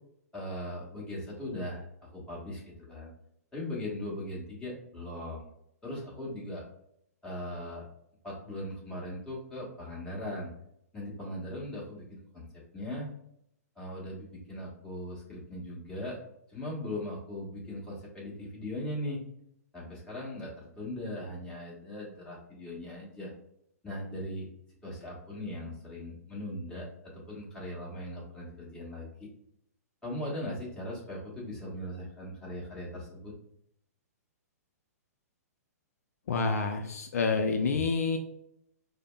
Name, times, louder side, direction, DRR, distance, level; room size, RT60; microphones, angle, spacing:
voice 1, 0.3-1.8 2.1-3.1 3.5-5.4 5.8-6.6 7.2-7.8 8.2-10.5 10.9-12.5 12.7-13.1 13.8-16.2 16.5-19.2 19.7-23.3 23.8-24.5 24.8-26.9 27.1-29.3 30.0-33.3, left 1 dB, 10° left, -6 dB, 1.3 m, -39 dB
voice 2, 36.3-38.2, left 4 dB, 65° left, 6 dB, 0.4 m, -28 dB
4.9 x 2.1 x 2.2 m, 0.75 s
hypercardioid pair, 125°, 9 cm